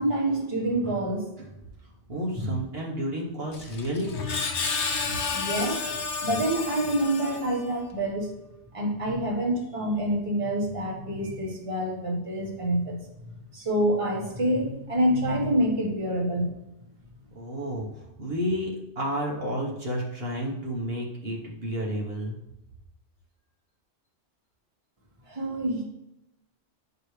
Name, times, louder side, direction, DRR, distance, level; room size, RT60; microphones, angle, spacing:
voice 1, 0.0-1.3 2.3-2.6 5.0-8.3 8.7-13.0 13.3-16.5 25.3-25.8, right 1 dB, 30° right, -2 dB, 1.5 m, -27 dB
voice 2, 2.1-4.2 17.3-22.4, equal, 60° right, -3 dB, 1.5 m, -31 dB
Screech, 3.5-7.8, left 4 dB, 80° left, 1.1 m, -31 dB
10.5 x 4.9 x 3.3 m, 0.88 s
omnidirectional pair, 1.2 m